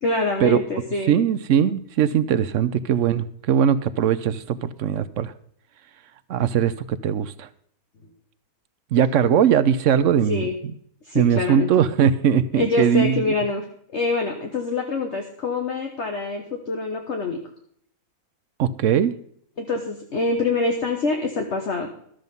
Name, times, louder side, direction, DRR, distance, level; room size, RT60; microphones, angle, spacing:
voice 1, 0.0-1.2 10.3-10.5 11.0-11.7 12.5-13.6 13.9-17.4 19.6-21.9, left 3 dB, 50° left, 3 dB, 1.4 m, -25 dB
voice 2, 1.1-5.3 6.3-7.5 8.9-10.5 11.1-13.2 18.6-19.1, right 8 dB, 65° right, 14 dB, 0.9 m, -20 dB
13.0 x 7.7 x 5.3 m, 0.66 s
omnidirectional pair, 1.6 m